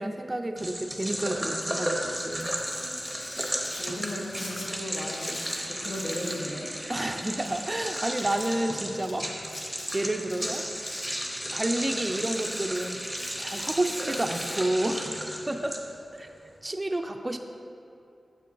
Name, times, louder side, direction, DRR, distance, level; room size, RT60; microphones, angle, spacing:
voice 1, 0.0-2.6 6.9-9.3 9.9-10.6 11.5-13.0 13.4-15.1 15.5-15.8 16.1-16.3 16.6-17.4, right 1 dB, 20° right, 4 dB, 0.3 m, -30 dB
sound 1, 0.6-16.2, equal, 5° right, 0.7 m, -34 dB
Domestic sounds home sounds, 2.2-4.7 4.9-6.5 6.7-6.8 7.4-8.5 9.0-9.1 9.4-9.9 10.3-11.5 11.9-14.6, left 1 dB, 70° left, 1.3 m, -42 dB
voice 2, 3.5-5.4 5.7-6.7, left 1 dB, 85° left, -2 dB, 0.9 m, -36 dB
7.6 x 6.6 x 2.6 m, 2.5 s
wide cardioid pair, 105°, 0 cm